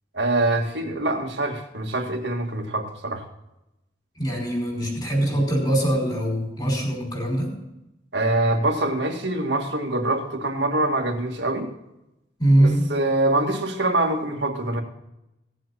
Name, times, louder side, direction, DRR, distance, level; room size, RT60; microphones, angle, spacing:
voice 1, 0.1-3.2 8.1-11.7 12.6-14.8, right 2 dB, 70° right, 2 dB, 2.0 m, -24 dB
voice 2, 4.2-7.5 12.4-12.8, right 1 dB, 25° left, 0 dB, 4.9 m, -22 dB
18.0 x 7.7 x 4.2 m, 0.88 s
head